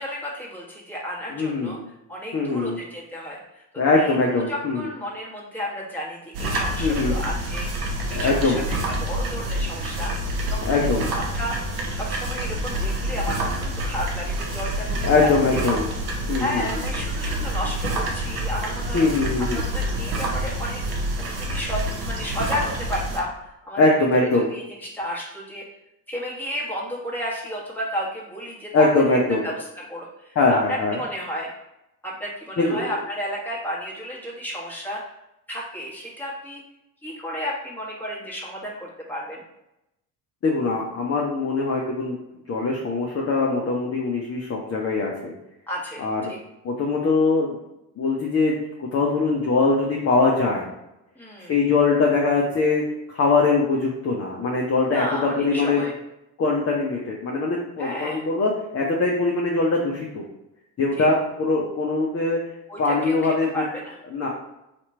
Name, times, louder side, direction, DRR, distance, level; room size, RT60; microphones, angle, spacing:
voice 1, 0.0-1.8 2.1-3.6 3.9-8.6 9.0-10.1 10.5-11.6 11.9-15.7 16.4-19.0 19.4-20.8 21.2-21.8 22.1-23.3 23.6-23.8 24.1-25.7 26.1-31.5 32.0-35.0 35.5-36.6 37.0-39.4 45.7-46.4 51.2-51.5 54.9-55.9 57.8-58.2 61.0-61.1 62.7-64.0, equal, 5° left, -5 dB, 1.4 m, -32 dB
voice 2, 1.3-1.8 2.3-2.8 3.8-4.9 6.8-7.2 8.1-8.6 10.6-11.1 15.0-15.9 16.3-16.9 18.9-19.7 23.8-24.5 28.7-29.5 30.4-31.0 32.6-32.9 40.4-42.2 42.5-45.3 46.0-46.2 46.6-47.6 48.0-50.7 51.4-52.8 53.1-55.8 56.4-60.2 60.8-62.4 62.8-63.5 64.1-64.3, left 3 dB, 30° left, -2 dB, 0.7 m, -22 dB
sound 1, 6.3-23.2, right 1 dB, 50° right, 0.9 m, -27 dB
2.9 x 2.5 x 4.3 m, 0.88 s
hypercardioid pair, 55°, 49 cm